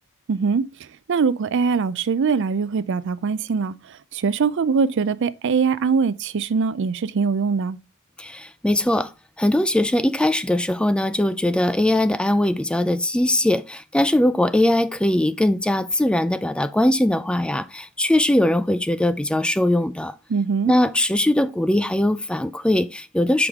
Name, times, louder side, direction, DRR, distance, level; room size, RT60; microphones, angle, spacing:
voice 1, 0.3-0.7 1.1-3.7 4.1-7.8 20.3-20.7, right 5 dB, 60° right, 0.4 m, -22 dB
voice 2, 8.2-9.1 9.4-20.1 20.7-23.5, left 1 dB, 5° left, 0.3 m, -20 dB
6.2 x 5.0 x 3.6 m
head